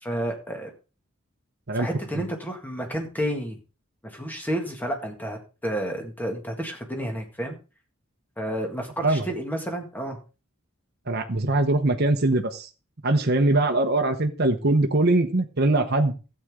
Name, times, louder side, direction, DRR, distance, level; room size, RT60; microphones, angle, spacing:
voice 1, 0.0-0.7 1.7-3.6 4.0-7.6 8.4-10.2, right 1 dB, 10° left, 3 dB, 1.9 m, -31 dB
voice 2, 11.1-12.7 13.0-16.1, right 2 dB, 50° right, 5 dB, 1.0 m, -22 dB
13.0 x 8.1 x 3.7 m, 0.33 s
head